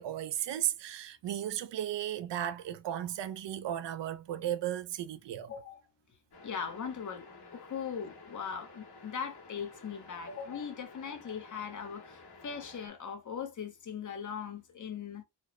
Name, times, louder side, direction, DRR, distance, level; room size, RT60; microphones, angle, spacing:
voice 1, 0.0-5.5, right 11 dB, 80° right, 0.5 m, -35 dB
voice 2, 5.4-5.8 6.4-7.3 7.5-15.2, left 7 dB, 45° left, 0.8 m, -40 dB
sound 1, 6.3-12.9, left 3 dB, 65° left, 1.5 m, -53 dB
4.3 x 2.1 x 3.0 m
wide cardioid pair, 175°, 43 cm